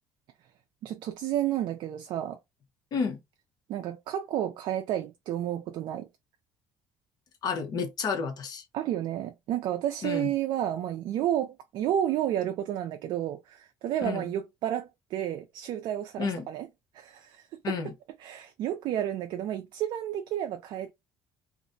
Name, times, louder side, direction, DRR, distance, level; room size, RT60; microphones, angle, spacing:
voice 1, 0.8-2.4 3.7-6.1 8.7-16.7 16.9-17.8 18.2-20.9, right 11 dB, 65° right, 0.3 m, -31 dB
voice 2, 7.4-8.6 10.0-10.3 14.0-14.3 16.2-16.5 17.6-17.9, left 5 dB, 50° left, 0.8 m, -31 dB
2.4 x 2.0 x 2.5 m
cardioid pair, 115°, 9 cm